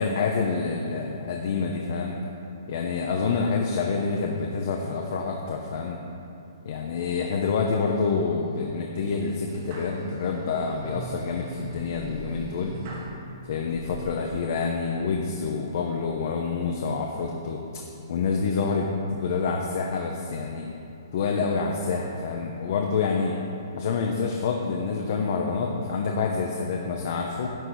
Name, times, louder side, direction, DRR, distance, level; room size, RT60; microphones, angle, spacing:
voice 1, 0.0-2.2 2.7-6.0 6.6-12.7 13.4-17.8 18.1-20.6 21.1-23.4 23.8-27.5, left 5 dB, 40° left, 1 dB, 0.7 m, -27 dB
sound 1, 7.0-7.7 8.2-8.6 9.2-13.2 13.7-14.0, right 3 dB, 30° right, 1.2 m, -41 dB
11.0 x 4.2 x 7.9 m, 2.7 s
hypercardioid pair, 175°, 2 cm